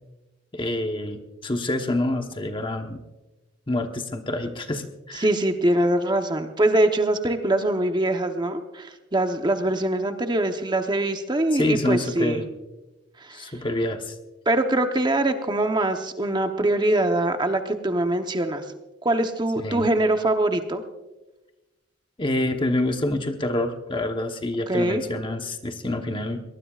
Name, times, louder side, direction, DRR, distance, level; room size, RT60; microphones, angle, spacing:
voice 1, 0.5-3.0 3.7-5.3 11.5-12.4 13.3-14.1 19.6-19.9 22.2-26.4, left 1 dB, 25° left, 5 dB, 1.1 m, -27 dB
voice 2, 5.2-12.4 13.2-13.5 14.5-18.6 19.0-20.8 24.7-25.0, right 1 dB, 25° right, 6 dB, 0.9 m, -23 dB
23.0 x 19.5 x 2.4 m, 1.1 s
head